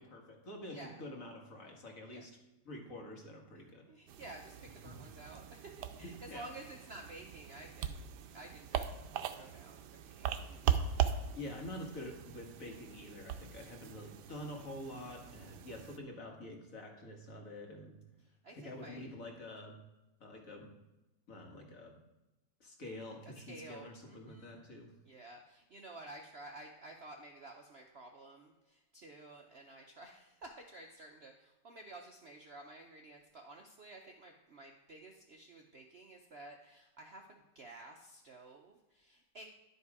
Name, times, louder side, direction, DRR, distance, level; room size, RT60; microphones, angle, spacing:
voice 1, 0.0-2.3 2.6-3.9 4.8-5.0 6.0-6.5 11.1-18.0 18.5-19.8 20.2-20.7 21.3-22.0 22.6-24.9, left 1 dB, 50° left, 1 dB, 1.8 m, -47 dB
voice 2, 0.7-1.0 2.0-2.2 3.9-10.4 18.4-19.0 23.5-24.6 25.0-39.4, right 2 dB, 55° right, 2 dB, 0.7 m, -52 dB
sound 1, 4.1-16.0, right 9 dB, 75° right, 1.2 m, -40 dB
11.0 x 5.4 x 4.8 m, 0.99 s
omnidirectional pair, 1.9 m